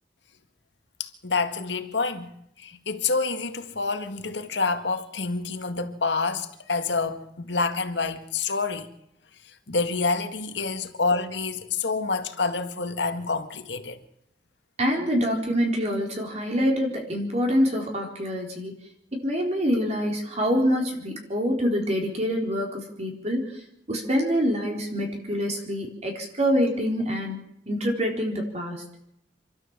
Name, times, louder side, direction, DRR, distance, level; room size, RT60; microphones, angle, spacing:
voice 1, 1.0-2.3 2.6-8.9 9.5-14.0, left 4 dB, 80° left, 1.9 m, -28 dB
voice 2, 14.8-18.7 19.1-23.6 23.9-27.4 27.7-28.8, equal, 40° right, 4.0 m, -25 dB
28.0 x 12.5 x 7.5 m
head